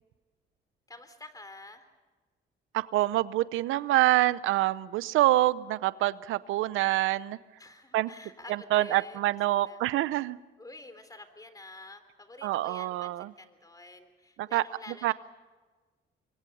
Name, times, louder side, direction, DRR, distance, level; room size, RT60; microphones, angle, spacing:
voice 1, 0.9-1.9 7.6-9.8 10.6-15.1, left 2 dB, 20° left, 10 dB, 3.6 m, -49 dB
voice 2, 2.7-7.4 7.9-8.1 8.5-10.4 12.4-13.3 14.4-14.6 15.0-15.1, right 15 dB, 90° right, 17 dB, 0.7 m, -26 dB
27.0 x 23.5 x 5.6 m, 1.3 s
cardioid pair, 90°, 20 cm